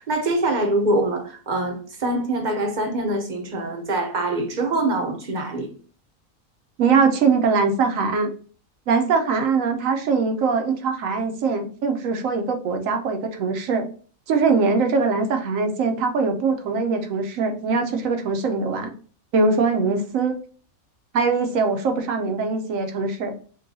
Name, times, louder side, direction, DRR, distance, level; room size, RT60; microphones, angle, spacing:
voice 1, 0.0-5.7, right 2 dB, 40° right, 0.7 m, -24 dB
voice 2, 6.8-8.3 8.9-13.9 14.3-18.9 19.3-20.4 21.1-23.3, right 4 dB, 75° right, 1.1 m, -22 dB
6.6 x 2.3 x 2.6 m
omnidirectional pair, 1.4 m